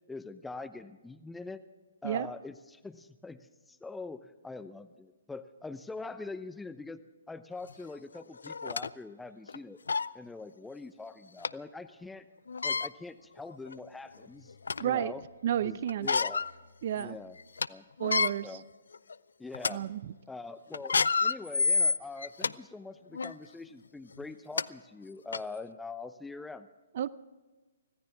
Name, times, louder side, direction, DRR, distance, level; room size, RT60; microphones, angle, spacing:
voice 1, 0.1-1.6 2.0-3.4 3.7-7.0 7.3-9.8 10.1-12.3 12.6-14.5 14.8-15.2 15.5-16.4 17.0-17.4 17.7-17.9 18.4-18.6 19.4-19.8 20.3-26.7, left 3 dB, 5° left, 11 dB, 0.8 m, -43 dB
sound 1, 7.7-7.8 8.4-8.9 9.5-9.6 9.9-10.1 11.4-11.5 12.5-12.9 13.7-13.8 14.2-14.9 15.9-16.5 16.9-17.0 17.4-17.7 18.0-18.3 18.9-19.1 19.5-19.7 20.7-22.5 23.1-23.3 24.2-24.3 24.6-24.7 25.3-25.4, left 5 dB, 70° left, 0.4 m, -28 dB
voice 2, 14.8-15.1 15.4-16.1 16.8-17.2 18.0-18.6 19.7-20.1 26.9-27.1, right 10 dB, 45° right, 18 dB, 0.6 m, -31 dB
25.0 x 16.0 x 3.6 m, 1.2 s
figure-of-eight pair, 125°, 0 cm